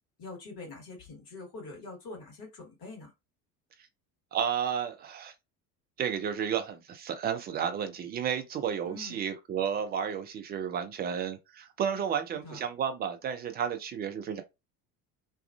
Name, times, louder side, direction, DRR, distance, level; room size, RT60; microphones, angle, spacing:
voice 1, 0.2-3.1 8.9-9.2 12.3-12.6, left 3 dB, 50° left, 1.7 m, -44 dB
voice 2, 4.3-5.3 6.0-14.4, right 8 dB, 20° right, 0.4 m, -32 dB
3.0 x 2.4 x 2.3 m
figure-of-eight pair, 65°, 48 cm